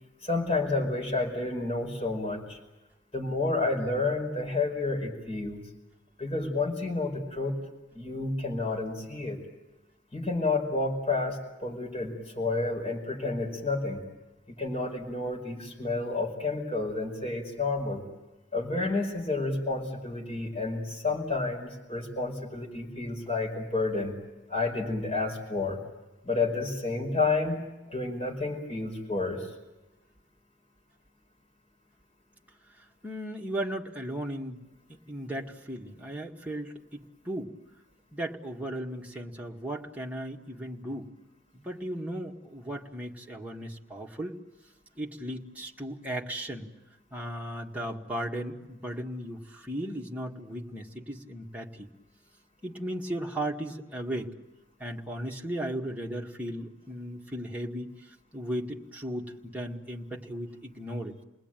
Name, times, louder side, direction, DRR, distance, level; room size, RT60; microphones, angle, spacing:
voice 1, 0.2-2.6 3.1-5.6 6.2-7.6 7.9-9.4 10.1-14.0 14.6-18.0 18.5-24.1 24.5-25.8 26.2-29.5, left 3 dB, 30° left, 1 dB, 5.2 m, -30 dB
voice 2, 33.0-34.6 34.9-37.5 38.1-41.1 41.5-44.4 45.0-46.7 47.1-51.9 52.6-54.3 54.8-57.9 58.3-61.2, right 1 dB, 10° right, -1 dB, 1.9 m, -36 dB
29.0 x 20.0 x 9.1 m, 1.0 s
head